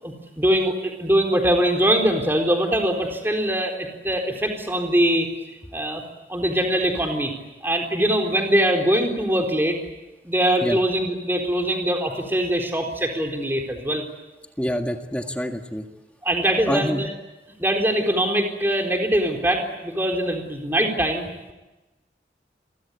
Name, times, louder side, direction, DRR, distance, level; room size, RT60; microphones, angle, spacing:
voice 1, 0.0-5.3 5.7-6.0 6.3-7.3 7.6-9.8 10.2-14.0 16.2-17.1 17.6-21.5, right 1 dB, 15° right, 3 dB, 4.0 m, -22 dB
voice 2, 14.6-15.8 16.7-17.0, equal, 5° left, 4 dB, 1.7 m, -26 dB
29.0 x 23.5 x 8.3 m, 1.1 s
head